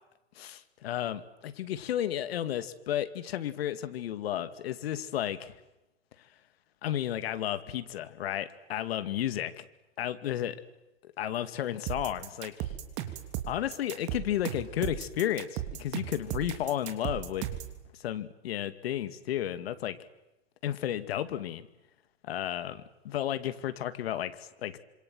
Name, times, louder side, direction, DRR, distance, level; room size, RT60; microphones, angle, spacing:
voice 1, 0.4-5.6 6.2-6.3 6.8-9.6 10.0-10.6 11.0-12.7 13.5-17.5 18.0-20.0 20.6-21.7 22.2-24.8, left 11 dB, 55° left, 12 dB, 2.4 m, -33 dB
sound 1, 11.9-17.8, right 12 dB, 30° right, 3.2 m, -36 dB
28.0 x 26.5 x 8.0 m, 0.98 s
hypercardioid pair, 145°, 36 cm